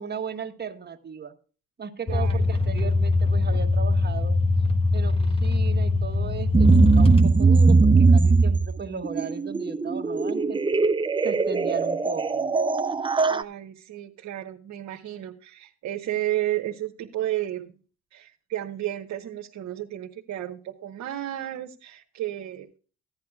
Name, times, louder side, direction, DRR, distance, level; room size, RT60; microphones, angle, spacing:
voice 1, 0.0-1.3 1.8-4.4 4.9-10.6 11.2-12.5, right 6 dB, 35° right, 6 dB, 1.4 m, -36 dB
sound 1, 2.1-7.6, left 3 dB, 20° left, 1.4 m, -23 dB
voice 2, 2.1-2.4 13.3-17.7 18.1-22.7, right 13 dB, 70° right, 1 dB, 1.0 m, -32 dB
sound 2, 6.5-13.4, right 4 dB, 15° right, 0.6 m, -20 dB
15.5 x 10.5 x 2.3 m, 0.38 s
cardioid pair, 90°, 30 cm